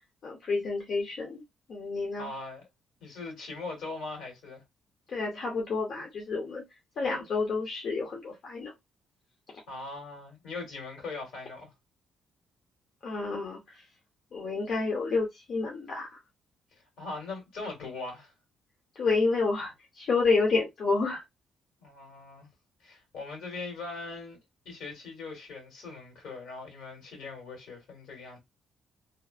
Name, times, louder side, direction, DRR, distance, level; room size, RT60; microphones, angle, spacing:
voice 1, 0.2-1.4 1.7-2.3 5.1-6.6 7.0-8.7 13.0-13.6 14.3-16.1 19.0-21.2, left 4 dB, 60° left, 0.9 m, -29 dB
voice 2, 2.2-2.7 3.0-4.6 9.7-11.7 17.0-18.3 21.8-22.5 22.8-24.4 24.7-28.4, left 3 dB, 80° left, 1.8 m, -40 dB
3.0 x 2.1 x 2.4 m
cardioid pair, 90°, 0 cm